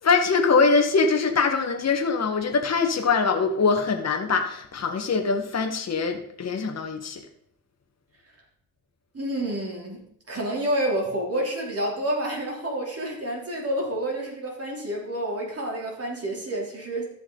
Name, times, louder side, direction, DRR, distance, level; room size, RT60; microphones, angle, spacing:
voice 1, 0.0-7.3, left 4 dB, 45° left, 4 dB, 1.6 m, -23 dB
voice 2, 9.1-17.0, right 1 dB, 40° right, -1 dB, 3.5 m, -29 dB
14.5 x 5.8 x 4.0 m, 0.66 s
cardioid pair, 75°, 36 cm